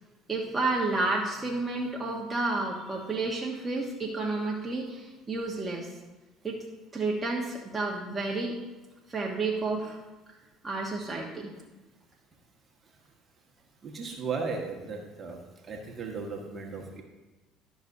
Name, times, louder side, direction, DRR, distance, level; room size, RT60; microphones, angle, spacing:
voice 1, 0.3-6.0 6.4-6.6 6.9-8.5 9.1-10.0 10.6-11.5, right 3 dB, 20° right, -2 dB, 1.3 m, -31 dB
voice 2, 13.8-15.4 15.7-17.0, right 4 dB, 40° right, 1 dB, 1.5 m, -36 dB
12.0 x 6.2 x 2.7 m, 1.2 s
hypercardioid pair, 65°, 0 cm